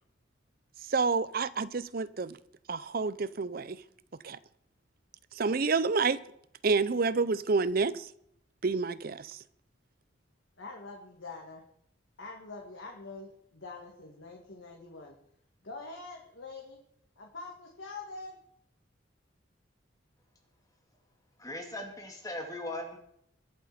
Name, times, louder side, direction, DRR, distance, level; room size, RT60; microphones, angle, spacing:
voice 1, 0.9-2.4 2.7-3.8 4.2-4.4 5.3-6.2 6.6-8.1 8.6-9.4, right 4 dB, 50° right, 0.6 m, -28 dB
voice 2, 10.6-11.6 12.2-15.2 15.6-16.8 17.2-18.4, left 3 dB, 75° left, 2.2 m, -45 dB
voice 3, 21.4-23.0, left 1 dB, 20° left, 2.2 m, -39 dB
22.0 x 7.9 x 4.3 m
head